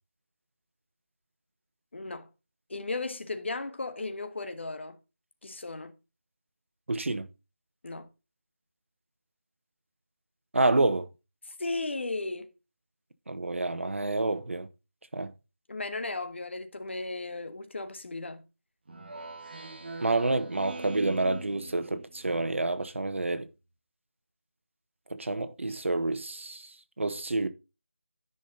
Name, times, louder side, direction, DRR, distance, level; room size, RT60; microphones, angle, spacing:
voice 1, 1.9-2.3 2.7-5.0 5.4-5.9 7.8-8.1 11.5-12.5 15.7-18.4, left 3 dB, 60° left, 1.5 m, -35 dB
voice 2, 6.9-7.3 10.5-11.1 13.3-14.7 15.1-15.3 20.0-23.5 25.1-26.7 27.0-27.5, right 2 dB, 65° right, 1.2 m, -28 dB
Speech synthesizer, 18.9-22.4, right 2 dB, 50° right, 1.5 m, -42 dB
10.5 x 5.6 x 3.8 m
figure-of-eight pair, 165°, 7 cm